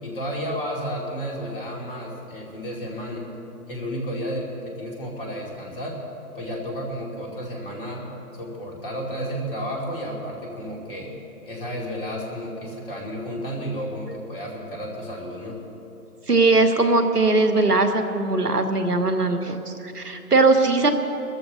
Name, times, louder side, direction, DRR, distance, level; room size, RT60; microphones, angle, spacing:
voice 1, 0.0-3.3 3.7-6.0 6.3-8.0 8.3-11.1 11.4-15.6, equal, 35° left, -1 dB, 2.8 m, -32 dB
voice 2, 16.3-20.9, right 3 dB, 80° right, 8 dB, 1.4 m, -20 dB
22.5 x 14.0 x 4.1 m, 3.0 s
figure-of-eight pair, 140°, 46 cm